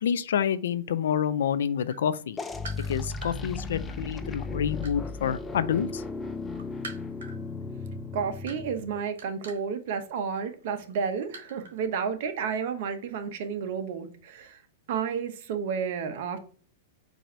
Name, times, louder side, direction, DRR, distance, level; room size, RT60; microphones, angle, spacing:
voice 1, 0.0-2.4 2.9-6.0, left 8 dB, 80° left, 0.4 m, -28 dB
sound 1, 1.8-3.4 4.1-5.7 6.0-11.9 12.1-12.4, right 2 dB, 85° right, 1.1 m, -45 dB
sound 2, 2.4-9.0, left 3 dB, 15° left, 0.4 m, -36 dB
voice 2, 8.1-14.6 14.9-16.4, right 6 dB, 60° right, 0.8 m, -31 dB
4.7 x 2.6 x 4.3 m
hypercardioid pair, 135°, 0 cm